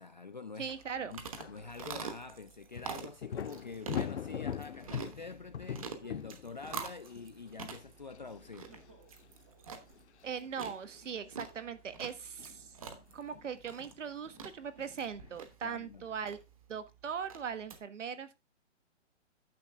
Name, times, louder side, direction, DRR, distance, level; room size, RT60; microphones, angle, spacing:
voice 1, 0.0-0.7 1.1-8.7 15.6-16.1, left 4 dB, 40° left, 0.4 m, -46 dB
voice 2, 0.6-1.2 10.2-12.7 13.1-16.4 16.7-18.3, right 7 dB, 80° right, 1.5 m, -40 dB
sound 1, 0.7-0.8 1.4-1.7 2.8-8.9 9.2-9.3 9.8-10.0 10.3-10.5 10.8-11.1 11.9-14.5 14.8-15.5, left 8 dB, 65° left, 0.8 m, -42 dB
sound 2, 0.7-17.8, right 5 dB, 30° right, 1.1 m, -47 dB
Crying sobbing, 3.2-4.6 5.1-5.2 5.8-6.5 6.9-8.0 8.4-12.4 13.1-15.2 15.8-16.6, right 1 dB, 10° right, 0.6 m, -65 dB
10.5 x 6.6 x 3.5 m
hypercardioid pair, 180°, 37 cm